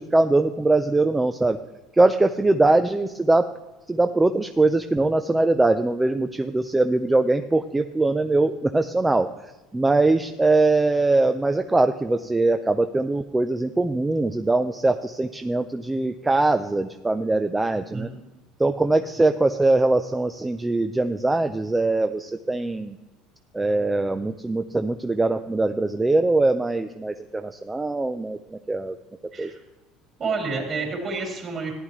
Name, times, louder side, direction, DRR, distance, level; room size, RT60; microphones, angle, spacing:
voice 1, 0.0-1.6 1.9-3.5 3.9-9.3 9.7-18.1 18.6-23.0 23.5-29.0 29.4-29.5, right 2 dB, 10° right, 8 dB, 0.4 m, -22 dB
voice 2, 30.2-31.7, right 4 dB, 35° right, 0 dB, 3.6 m, -29 dB
14.5 x 9.9 x 3.1 m, 1.1 s
cardioid pair, 130°, 0 cm